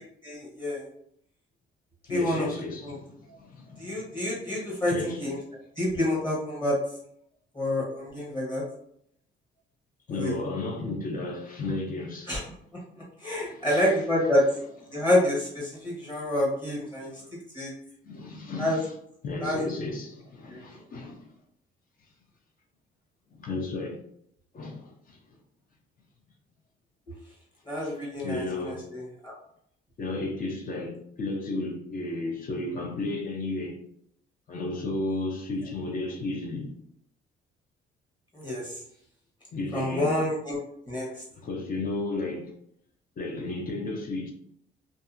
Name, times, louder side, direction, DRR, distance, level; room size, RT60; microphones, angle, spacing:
voice 1, 0.2-0.8 2.1-2.5 2.8-3.0 3.8-5.4 5.8-6.8 7.5-8.6 10.1-10.3 12.3-12.4 13.2-14.4 14.9-17.2 17.5-17.7 18.6-18.8 19.4-19.7 20.5-20.6 27.7-29.3 38.3-38.8 39.7-40.6 40.9-41.2, left 1 dB, 20° left, 1.1 m, -28 dB
voice 2, 2.0-4.2 4.9-5.3 10.1-12.3 13.4-14.0 14.9-15.1 15.7-15.8 16.2-16.4 16.9-17.3 18.0-18.9 19.2-21.3 23.3-24.0 24.5-25.4 27.7-28.0 28.2-28.9 30.0-33.8 34.5-36.7 39.5-40.2 41.3-42.5 43.2-44.3, left 2 dB, 45° left, 0.6 m, -34 dB
2.6 x 2.3 x 2.5 m
cardioid pair, 90°, 20 cm